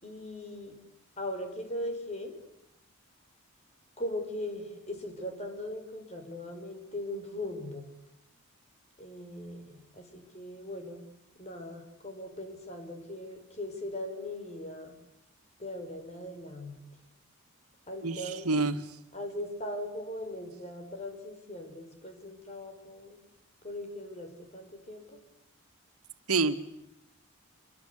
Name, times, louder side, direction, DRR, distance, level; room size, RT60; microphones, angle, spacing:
voice 1, 0.0-0.8 1.2-2.3 4.0-7.8 9.0-11.1 11.4-15.0 15.6-16.8 17.9-18.5 19.1-23.2 23.6-25.2, left 1 dB, 30° left, 5 dB, 5.8 m, -39 dB
voice 2, 18.0-18.8 26.3-26.5, right 3 dB, 85° right, 8 dB, 2.0 m, -27 dB
28.5 x 24.5 x 8.5 m, 0.80 s
head